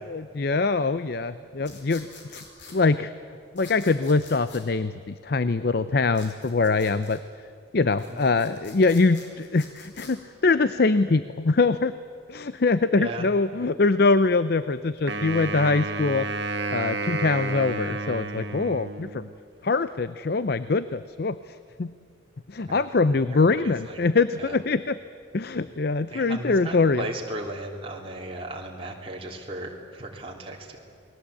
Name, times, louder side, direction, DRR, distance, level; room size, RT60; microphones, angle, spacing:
voice 1, 0.1-3.1 3.5-7.2 7.7-11.9 12.3-16.3 16.7-19.3 19.6-21.4 21.8-21.9 22.5-25.0 25.3-27.1, left 3 dB, 55° left, 14 dB, 0.6 m, -23 dB
sound 1, 1.6-2.8 3.6-4.6 6.1-7.2 7.8-10.1, left 4 dB, 70° left, 4.8 m, -48 dB
voice 2, 12.9-13.3 22.7-22.8 23.1-24.0 24.4-24.6 26.1-30.8, right 1 dB, 30° right, 0 dB, 3.2 m, -36 dB
Wind instrument woodwind instrument, 15.1-19.4, right 3 dB, 60° right, 1.5 m, -31 dB
28.5 x 20.5 x 8.5 m, 2.3 s
head